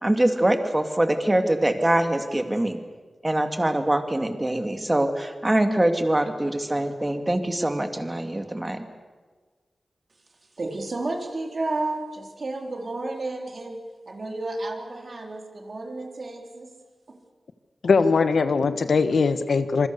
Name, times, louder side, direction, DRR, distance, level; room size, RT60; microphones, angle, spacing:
voice 1, 0.0-2.8 3.2-8.8, right 1 dB, 20° right, 6 dB, 2.4 m, -23 dB
voice 2, 10.6-17.2, right 2 dB, 55° right, 3 dB, 3.8 m, -32 dB
voice 3, 17.8-19.9, left 4 dB, 85° left, 10 dB, 1.4 m, -21 dB
26.5 x 24.0 x 6.9 m, 1.4 s
wide cardioid pair, 95°, 0 cm